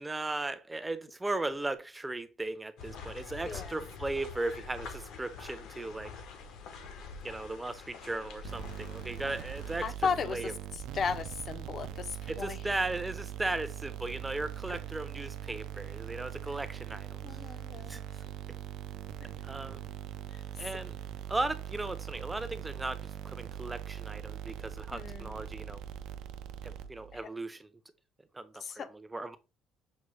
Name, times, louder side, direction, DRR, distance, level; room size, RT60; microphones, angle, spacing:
voice 1, 0.0-6.1 7.2-10.5 12.3-17.4 17.9-18.0 19.4-19.8 20.6-21.0 21.3-25.8 26.6-27.7 28.3-29.4, right 2 dB, 10° right, 0.5 m, -37 dB
sound 1, 2.8-9.9, left 5 dB, 70° left, 0.7 m, -46 dB
voice 2, 3.4-3.8 9.8-12.6 14.7-14.8 17.2-18.0 20.3-20.4 24.9-25.4 27.1-27.3 28.6-28.9, left 6 dB, 40° left, 0.4 m, -36 dB
sound 2, 8.4-27.2, right 10 dB, 80° right, 0.4 m, -42 dB
6.1 x 2.1 x 3.1 m
cardioid pair, 120°, 0 cm